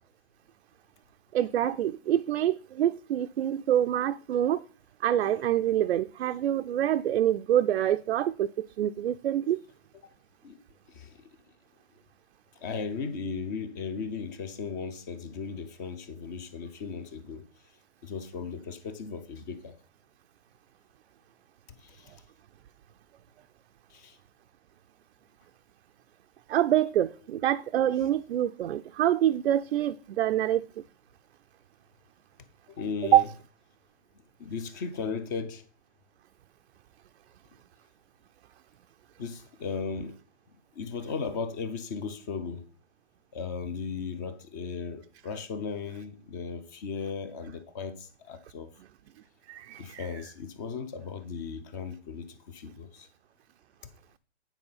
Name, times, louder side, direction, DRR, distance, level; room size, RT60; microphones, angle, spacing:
voice 1, 1.3-4.6 5.0-8.5 8.8-9.6 26.5-30.6 33.0-33.3 49.5-50.1, right 11 dB, 65° right, 0.5 m, -26 dB
voice 2, 10.9-11.2 12.6-17.4 18.0-19.8 21.8-22.2 23.9-24.2 32.7-33.3 34.4-35.6 39.2-40.1 40.7-42.6 43.3-48.7 49.8-53.1, left 5 dB, 15° left, 0.4 m, -36 dB
9.0 x 4.3 x 5.6 m
hypercardioid pair, 140°, 35 cm